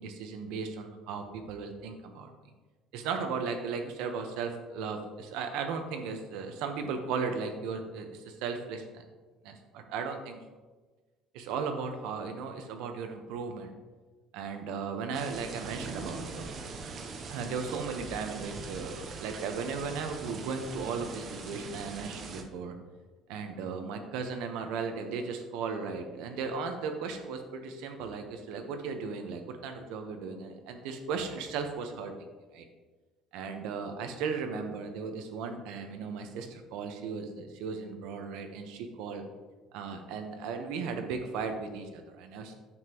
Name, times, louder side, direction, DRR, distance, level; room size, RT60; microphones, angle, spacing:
voice 1, 0.0-2.3 2.9-9.0 9.4-10.4 11.3-13.7 14.3-16.5 17.3-22.7 23.3-32.1 32.5-32.6 33.3-39.2 39.7-42.5, right 5 dB, 75° right, 6 dB, 1.0 m, -36 dB
sound 1, 15.1-22.4, right 4 dB, 40° right, 0.8 m, -42 dB
9.7 x 7.3 x 3.0 m, 1.3 s
cardioid pair, 155°, 0 cm